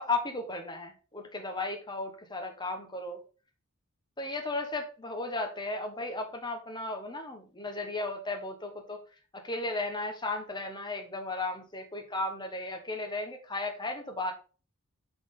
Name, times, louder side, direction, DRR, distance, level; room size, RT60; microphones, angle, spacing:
voice 1, 0.0-3.2 4.2-9.0 9.3-14.3, left 2 dB, 20° left, 4 dB, 1.2 m, -35 dB
6.1 x 6.0 x 3.7 m, 0.35 s
head